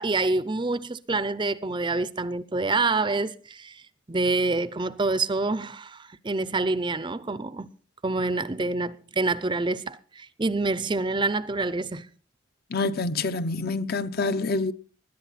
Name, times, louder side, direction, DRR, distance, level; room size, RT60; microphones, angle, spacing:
voice 1, 0.0-3.8 4.1-7.7 8.0-12.1, right 3 dB, 20° right, 0.5 m, -27 dB
voice 2, 12.7-14.7, left 3 dB, 45° left, 0.7 m, -27 dB
20.0 x 11.0 x 4.2 m
head